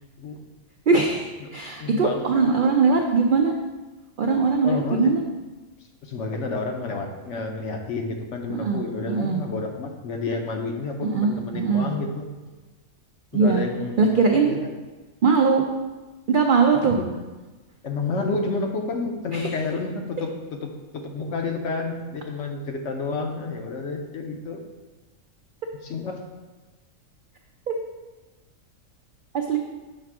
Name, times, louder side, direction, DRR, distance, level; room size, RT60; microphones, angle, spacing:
voice 1, 0.9-3.5 4.2-5.2 8.5-8.8 9.1-9.4 11.0-11.9 13.3-13.6 14.0-14.6 15.2-15.6 16.3-17.0 19.3-19.5 27.7-27.8 29.3-29.6, right 4 dB, 80° right, 2 dB, 0.4 m, -21 dB
voice 2, 1.8-2.3 2.6-2.7 4.6-5.1 6.0-12.3 13.3-14.1 14.4-14.7 16.8-17.1 17.8-24.6 25.8-26.2, left 3 dB, 65° left, 3 dB, 1.0 m, -30 dB
6.5 x 3.5 x 4.7 m, 1.2 s
omnidirectional pair, 1.4 m